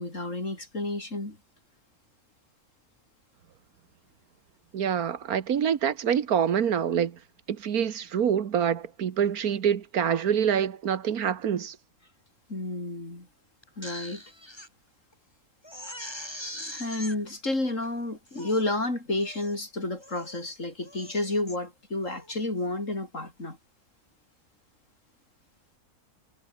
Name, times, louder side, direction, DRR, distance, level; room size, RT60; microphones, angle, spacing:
voice 1, 0.0-1.4 12.5-13.3 13.8-14.2 15.9-16.0 16.6-23.6, left 2 dB, 60° left, 6.3 m, -31 dB
voice 2, 4.7-7.2 7.5-11.8, right 8 dB, 85° right, 1.7 m, -26 dB
Crying sobbing, 13.6-14.7 15.1-15.2 15.6-17.2 17.8-17.9 18.3-18.7 19.2-19.6 20.0-20.4 20.8-21.6 22.0-22.3, left 1 dB, 15° left, 7.5 m, -42 dB
omnidirectional pair, 1.5 m